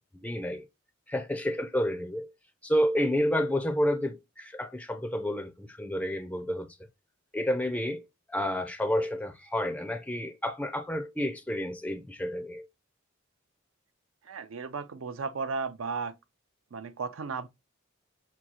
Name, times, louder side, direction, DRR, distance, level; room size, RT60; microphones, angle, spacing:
voice 1, 0.2-0.6 1.1-2.3 2.6-6.7 7.3-8.0 8.3-12.7, equal, 5° left, 0.4 m, -30 dB
voice 2, 14.2-16.1 16.7-17.5, right 4 dB, 75° right, 0.6 m, -34 dB
6.1 x 2.3 x 2.9 m
head